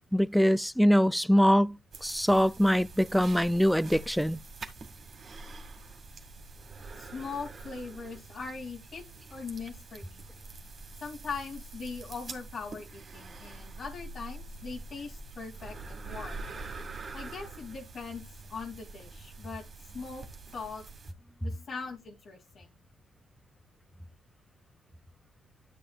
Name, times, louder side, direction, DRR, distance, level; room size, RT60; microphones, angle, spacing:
voice 1, 0.1-1.8 2.0-4.4, equal, ahead, 0.4 m, -23 dB
sound 1, 1.9-21.1, right 3 dB, 45° right, 2.2 m, -45 dB
voice 2, 7.0-9.0 9.3-10.2 11.0-16.5 17.1-19.6 19.9-20.3 20.5-20.8 21.4-22.7, left 4 dB, 60° left, 2.8 m, -41 dB
12.5 x 7.1 x 2.5 m
cardioid pair, 90°, 0 cm